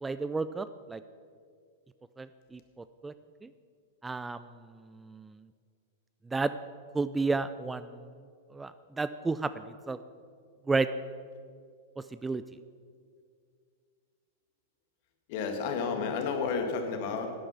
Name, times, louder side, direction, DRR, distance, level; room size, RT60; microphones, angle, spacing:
voice 1, 0.0-1.0 2.2-3.1 3.4-3.5 4.0-4.4 4.9-5.3 6.3-6.5 6.9-8.0 8.5-10.0 10.7-10.9 12.2-12.4, right 3 dB, 10° right, 13 dB, 0.4 m, -32 dB
voice 2, 15.3-17.3, left 5 dB, 50° left, 5 dB, 1.8 m, -31 dB
12.0 x 10.0 x 5.8 m, 2.2 s
figure-of-eight pair, 100°, 0 cm